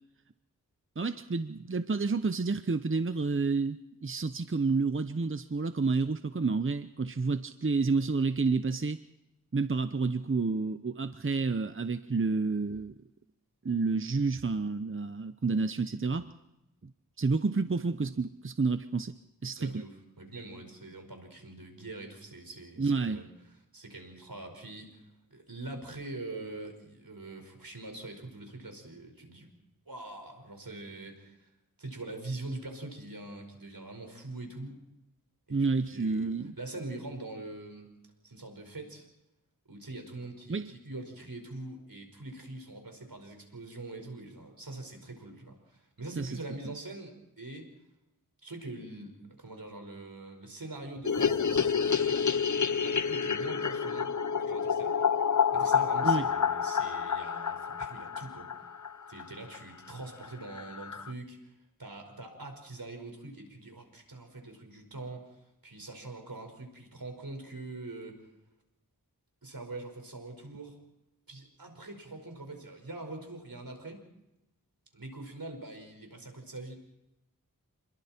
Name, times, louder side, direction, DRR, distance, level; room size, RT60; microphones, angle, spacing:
voice 1, 1.0-9.0 9.5-13.0 13.6-16.3 17.2-19.1 19.4-19.8 22.8-23.2 35.5-36.6 40.5-40.7 46.2-46.4 46.6-46.7 56.0-56.3, right 4 dB, 35° right, 11 dB, 0.8 m, -29 dB
voice 2, 19.6-23.3 23.7-25.0 25.3-29.5 29.9-31.5 31.8-34.8 35.5-37.9 38.2-39.1 39.7-47.7 48.4-52.3 52.8-55.0 55.5-58.5 59.1-68.3 69.4-70.8 71.3-74.0 74.9-76.7, right 2 dB, 75° right, 5 dB, 5.3 m, -43 dB
sound 1, 51.0-59.3 59.5-59.6 59.9-60.0 60.2-60.3 60.6-61.1, left 6 dB, 55° left, 0.8 m, -29 dB
28.0 x 22.0 x 4.4 m, 0.91 s
wide cardioid pair, 45°, 35 cm